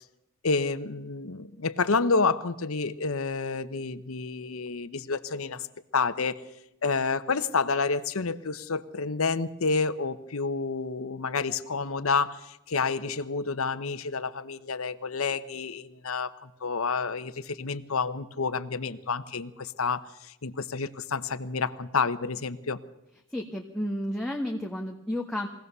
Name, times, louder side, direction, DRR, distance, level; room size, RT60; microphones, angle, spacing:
voice 1, 0.4-5.7 5.9-6.4 6.8-22.8, left 4 dB, 75° left, 11 dB, 0.9 m, -29 dB
voice 2, 23.3-25.5, left 1 dB, 5° left, 1 dB, 1.3 m, -32 dB
23.0 x 17.0 x 6.8 m, 0.87 s
head